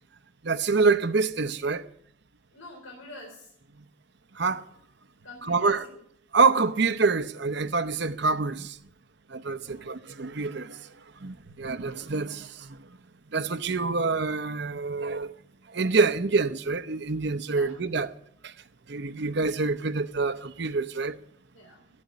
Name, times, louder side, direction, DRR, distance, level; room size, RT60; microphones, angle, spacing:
voice 1, 0.4-1.9 4.4-4.6 5.5-5.9 6.3-8.8 9.3-10.9 11.2-12.8 13.3-15.4 15.7-18.1 18.4-18.5 18.9-21.2, right 4 dB, 55° right, 0.7 m, -26 dB
voice 2, 2.5-3.5 5.2-6.0 9.5-9.9 17.5-17.7 21.5-21.8, left 2 dB, 90° left, 4.1 m, -46 dB
13.0 x 9.5 x 9.6 m
head